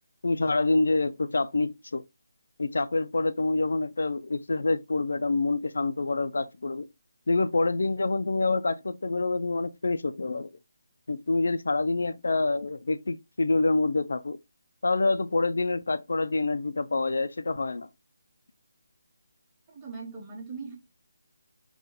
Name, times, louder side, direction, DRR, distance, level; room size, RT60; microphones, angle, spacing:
voice 1, 0.2-2.0 2.6-6.9 7.3-10.5 11.1-14.4 14.8-17.9, left 3 dB, 70° left, 0.3 m, -26 dB
voice 2, 19.7-20.8, right 4 dB, 15° right, 1.0 m, -40 dB
4.2 x 2.2 x 3.8 m
hypercardioid pair, 170°, 0 cm